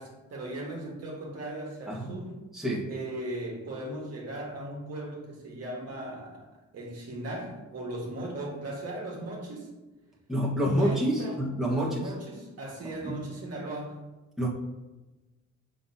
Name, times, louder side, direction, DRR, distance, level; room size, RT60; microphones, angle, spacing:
voice 1, 0.0-2.4 2.9-6.5 6.7-9.7 10.7-14.0, right 1 dB, 55° right, -1 dB, 1.7 m, -38 dB
voice 2, 2.5-2.9 10.3-12.0 13.0-13.2 14.4-14.5, equal, ahead, -5 dB, 1.4 m, -27 dB
6.7 x 5.6 x 2.8 m, 1.1 s
cardioid pair, 90°, 30 cm